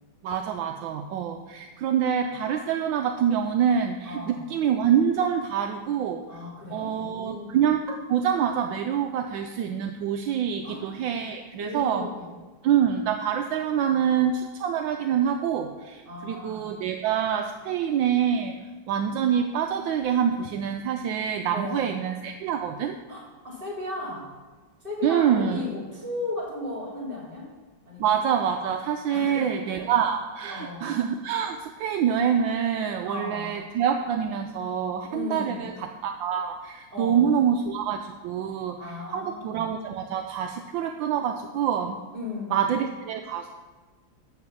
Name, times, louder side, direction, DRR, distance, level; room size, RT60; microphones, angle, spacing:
voice 1, 0.2-6.2 6.7-12.1 12.6-18.5 18.9-23.0 25.0-25.6 28.0-42.0 42.5-43.5, right 8 dB, 75° right, 4 dB, 1.2 m, -26 dB
voice 2, 4.0-4.5 6.3-7.6 10.6-10.9 11.6-12.4 16.0-16.7 21.5-22.0 23.1-24.3 24.8-27.5 27.8-28.1 29.1-29.9 30.5-30.9 33.0-33.6 35.1-35.8 36.9-37.4 38.8-39.7 42.1-42.8, left 2 dB, 25° right, -4 dB, 3.2 m, -36 dB
12.5 x 4.3 x 7.1 m, 1.3 s
omnidirectional pair, 2.3 m